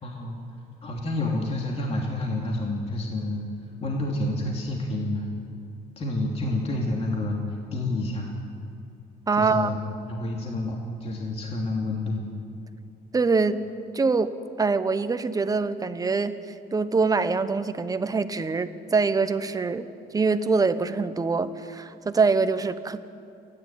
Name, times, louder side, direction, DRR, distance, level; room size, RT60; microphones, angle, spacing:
voice 1, 0.0-0.4 0.8-3.4 3.8-5.3 6.0-8.3 9.4-9.8 10.1-12.3, left 2 dB, 35° left, -1 dB, 2.9 m, -29 dB
voice 2, 9.3-9.7 13.1-13.6 13.9-16.4 16.7-19.9 20.1-23.0, right 4 dB, 20° right, 11 dB, 1.0 m, -24 dB
28.0 x 11.0 x 9.2 m, 2.5 s
cardioid pair, 110°, 17 cm